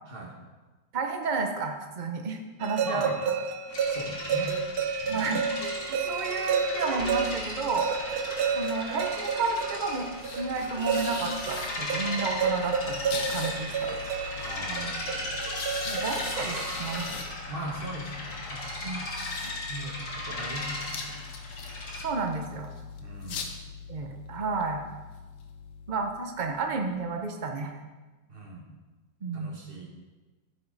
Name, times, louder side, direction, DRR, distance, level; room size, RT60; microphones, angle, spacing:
voice 1, 0.9-3.1 5.1-5.4 5.9-7.9 8.5-10.1 10.4-13.9 15.9-17.1 18.8-19.0 22.0-22.7 23.9-24.8 25.9-27.8 29.2-29.5, right 4 dB, 90° right, 4 dB, 0.4 m, -31 dB
sound 1, 2.6-17.2, right 6 dB, 65° right, 1.0 m, -31 dB
voice 2, 2.8-3.2 3.9-4.5 5.0-5.3 14.3-15.3 17.5-18.9 19.7-21.1 23.0-23.5 28.3-28.7 29.3-29.9, right 1 dB, 30° right, -1 dB, 1.6 m, -39 dB
sound 2, 3.7-22.0, left 1 dB, 45° left, 1.9 m, -37 dB
sound 3, 7.0-26.9, left 5 dB, 85° left, 1.7 m, -42 dB
14.5 x 5.7 x 4.0 m, 1.2 s
omnidirectional pair, 2.1 m